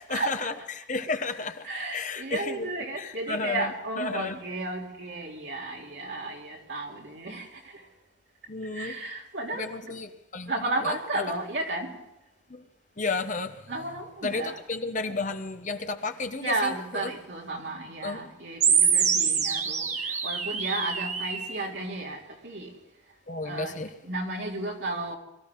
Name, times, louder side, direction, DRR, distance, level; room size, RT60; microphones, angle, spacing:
voice 1, 0.1-2.7 3.0-3.7 4.0-4.4 8.5-9.0 9.5-10.5 10.8-10.9 12.5-12.6 13.0-13.7 14.2-17.1 18.0-18.2 23.3-23.9, left 3 dB, 40° left, 1.0 m, -32 dB
voice 2, 1.6-7.8 8.7-9.9 10.5-11.9 13.7-14.6 16.4-22.7 23.4-23.7 24.0-25.2, right 2 dB, 65° right, 3.3 m, -33 dB
sound 1, 18.6-21.6, right 6 dB, 40° right, 1.5 m, -25 dB
22.5 x 14.0 x 3.7 m
head